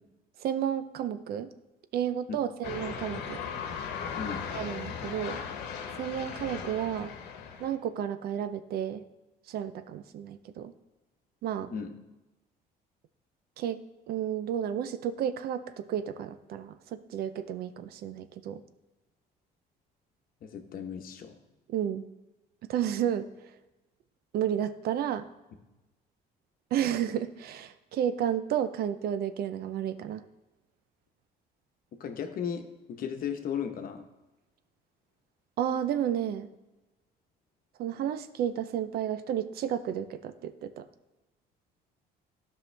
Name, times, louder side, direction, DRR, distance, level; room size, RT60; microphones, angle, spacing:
voice 1, 0.4-1.5 1.9-3.4 4.5-5.4 6.0-7.2 7.6-9.1 9.5-10.7 11.4-11.7 13.6-13.8 14.1-18.6 21.7-22.0 22.7-23.3 24.3-25.3 26.7-30.2 35.6-36.5 37.8-40.9, right 10 dB, 65° right, 12 dB, 0.5 m, -32 dB
sound 1, 2.6-7.8, left 6 dB, 90° left, 1.1 m, -37 dB
voice 2, 20.4-21.4 31.9-34.0, left 7 dB, 60° left, 5 dB, 1.0 m, -35 dB
12.5 x 5.5 x 3.3 m, 1.0 s
cardioid pair, 110°, 17 cm